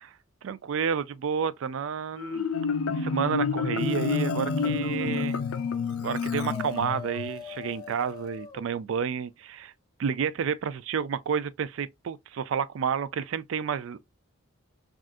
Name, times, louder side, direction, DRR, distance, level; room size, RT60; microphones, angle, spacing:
voice 1, 0.4-2.5 2.9-5.4 6.0-9.7 10.0-14.0, right 7 dB, 70° right, 0.4 m, -30 dB
Marimba xylophone, 2.2-7.3, left 5 dB, 90° left, 0.4 m, -29 dB
Dog, 3.1-8.7, left 4 dB, 20° left, 0.3 m, -43 dB
3.5 x 2.4 x 2.5 m
head